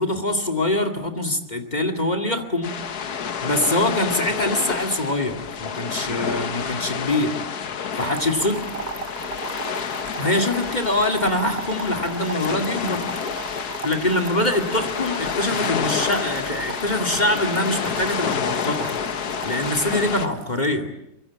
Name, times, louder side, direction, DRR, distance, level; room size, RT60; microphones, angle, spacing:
voice 1, 0.0-2.7 3.4-7.4 8.0-8.6 10.2-13.0 13.8-18.9 19.4-20.9, left 1 dB, 25° left, 9 dB, 2.3 m, -24 dB
sound 1, 2.6-20.3, left 7 dB, 75° left, 1.8 m, -29 dB
voice 2, 6.1-6.4 8.0-9.6, right 2 dB, 70° right, 4 dB, 3.5 m, -42 dB
sound 2, 8.0-20.7, right 5 dB, 45° right, 1.4 m, -37 dB
24.0 x 23.5 x 8.7 m, 0.86 s
omnidirectional pair, 1.7 m